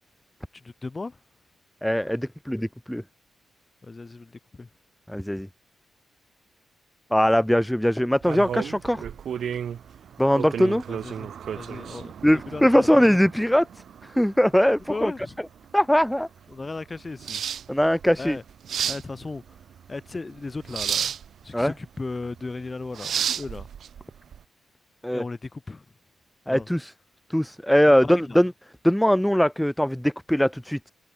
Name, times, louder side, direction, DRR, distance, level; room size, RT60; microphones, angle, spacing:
voice 1, 0.5-1.2 3.8-4.7 10.9-13.2 14.9-15.4 16.5-17.4 18.2-18.4 18.9-19.6 19.9-21.2 21.4-23.7 25.1-25.8 26.5-26.7 27.8-28.4, left 3 dB, 30° left, 4.5 m, -36 dB
voice 2, 1.8-3.0 5.1-5.5 7.1-9.0 10.2-10.8 12.2-13.7 14.1-15.1 15.7-16.3 17.7-18.4 21.5-21.7 25.0-25.2 26.5-26.9 27.3-28.5 28.8-30.9, equal, 5° left, 0.7 m, -21 dB
sound 1, 8.2-24.4, right 8 dB, 75° right, 0.8 m, -33 dB
cardioid pair, 75°, 0 cm